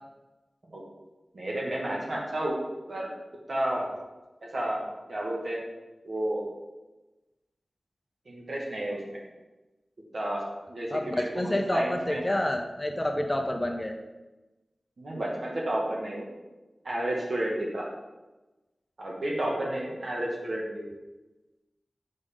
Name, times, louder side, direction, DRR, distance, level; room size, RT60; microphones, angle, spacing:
voice 1, 1.3-2.6 2.9-3.1 3.5-3.9 4.5-4.8 5.1-5.6 6.0-6.5 8.3-9.2 10.1-12.2 15.0-16.3 16.8-17.9 19.0-20.9, right 1 dB, 65° right, -3 dB, 2.0 m, -31 dB
voice 2, 10.9-13.9, left 1 dB, 20° left, 3 dB, 0.8 m, -28 dB
7.2 x 6.1 x 3.8 m, 1.1 s
wide cardioid pair, 95°, 0 cm